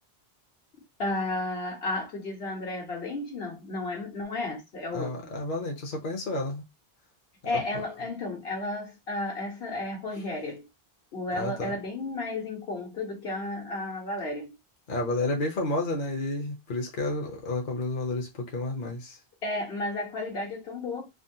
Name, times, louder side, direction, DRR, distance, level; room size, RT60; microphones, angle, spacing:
voice 1, 1.0-5.2 7.4-10.7 11.1-14.6 19.4-21.1, left 2 dB, 75° left, 1.4 m, -33 dB
voice 2, 4.9-6.6 7.5-7.6 11.3-11.7 14.9-19.2, left 2 dB, 50° left, 0.8 m, -31 dB
3.5 x 2.2 x 2.6 m
omnidirectional pair, 1.1 m